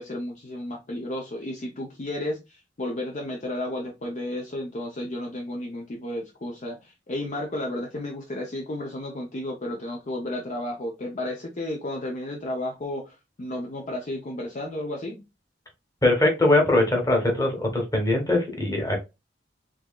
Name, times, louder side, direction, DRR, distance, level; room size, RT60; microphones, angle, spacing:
voice 1, 0.0-15.2, left 1 dB, 40° left, 0.6 m, -33 dB
voice 2, 16.0-19.0, left 2 dB, 20° left, 1.2 m, -21 dB
4.5 x 2.9 x 2.3 m
head